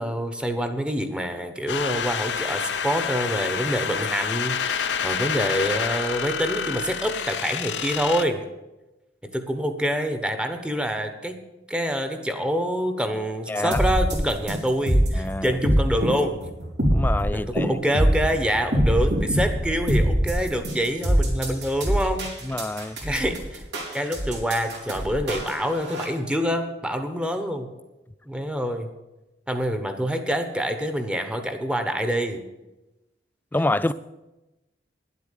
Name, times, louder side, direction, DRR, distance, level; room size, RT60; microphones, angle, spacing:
voice 1, 0.0-8.4 9.3-11.4 11.7-16.4 17.3-22.3 23.0-23.6 23.9-27.7 28.3-28.9 29.5-32.4, equal, 5° right, 1.0 m, -26 dB
sound 1, 1.7-8.2, left 7 dB, 80° left, 0.7 m, -28 dB
voice 2, 13.5-13.8 15.1-15.5 16.9-17.7 22.4-23.0 33.5-33.9, left 2 dB, 10° left, 0.3 m, -26 dB
sound 2, 13.7-26.0, equal, 85° right, 3.7 m, -23 dB
10.5 x 8.3 x 9.1 m
head